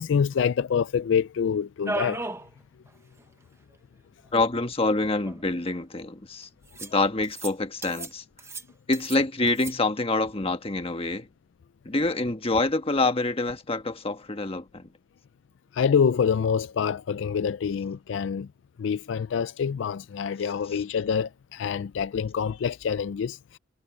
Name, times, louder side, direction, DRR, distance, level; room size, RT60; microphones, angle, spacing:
voice 1, 0.0-2.3 8.0-8.1 15.7-18.5 18.8-23.6, left 7 dB, 65° left, 0.4 m, -26 dB
sound 1, 1.8-2.5 2.9-3.0 3.2-3.3 4.3-4.4 5.2-5.8 6.7-7.0 7.2-7.5 7.8-8.1 8.4-9.2 9.5-9.7, right 2 dB, 15° right, 1.0 m, -35 dB
voice 2, 4.3-6.5 6.8-8.2 8.9-11.3 11.8-14.9, left 2 dB, 30° left, 1.4 m, -26 dB
head